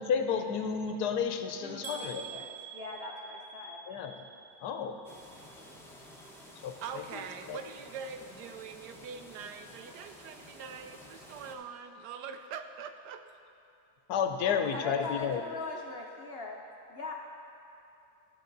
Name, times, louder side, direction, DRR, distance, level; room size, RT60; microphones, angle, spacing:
voice 1, 0.0-2.2 3.9-4.2 4.6-5.0 6.6-6.7 7.1-7.2 7.5-7.6 14.1-15.4, left 7 dB, 80° left, 6 dB, 1.2 m, -31 dB
voice 2, 1.6-3.8 14.4-16.6 16.9-17.1, left 3 dB, 55° left, 0 dB, 0.7 m, -41 dB
sound 1, 1.8-5.8 6.1-6.7 7.2-7.3 7.7-7.8, right 4 dB, 60° right, 0.8 m, -47 dB
sound 2, 5.0-11.5, left 1 dB, ahead, 0.6 m, -52 dB
voice 3, 6.8-13.2, right 6 dB, 85° right, 8 dB, 1.2 m, -43 dB
13.5 x 6.9 x 3.9 m, 2.6 s
omnidirectional pair, 1.7 m